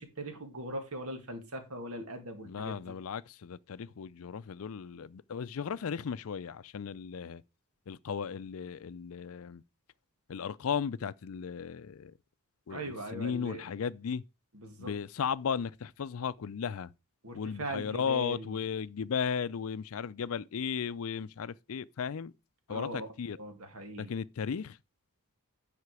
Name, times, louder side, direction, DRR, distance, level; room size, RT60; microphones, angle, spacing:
voice 1, 0.0-3.0 12.7-13.6 14.5-14.9 17.2-18.6 22.7-23.1 23.4-24.1, right 1 dB, 80° right, 2.0 m, -40 dB
voice 2, 2.5-7.4 7.9-9.6 10.3-12.1 12.7-14.2 14.8-16.9 17.3-22.3 22.7-23.4 24.0-24.8, left 6 dB, 70° left, 0.4 m, -35 dB
9.7 x 5.0 x 4.8 m
head